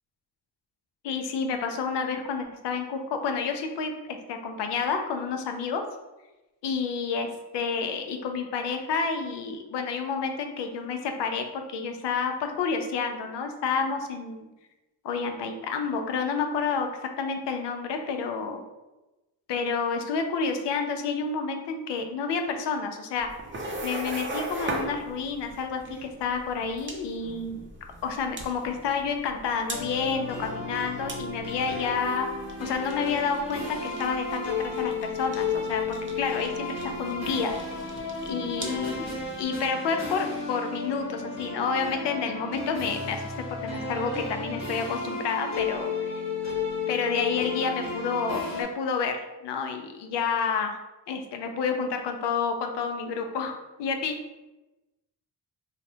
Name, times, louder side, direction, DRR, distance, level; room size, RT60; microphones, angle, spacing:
voice 1, 1.0-5.8 6.6-14.5 15.0-16.9 17.2-18.6 19.5-23.3 23.8-27.6 28.0-32.3 32.6-37.5 38.2-39.1 39.4-43.3 43.6-46.2 46.9-49.2 49.4-50.7 51.1-54.2, left 5 dB, 70° left, 5 dB, 0.5 m, -29 dB
sound 1, 23.2-39.4, right 2 dB, 25° right, 0.6 m, -40 dB
sound 2, 29.7-48.6, left 4 dB, 35° left, 1.0 m, -33 dB
3.1 x 2.1 x 2.7 m, 1.0 s
cardioid pair, 55°, 44 cm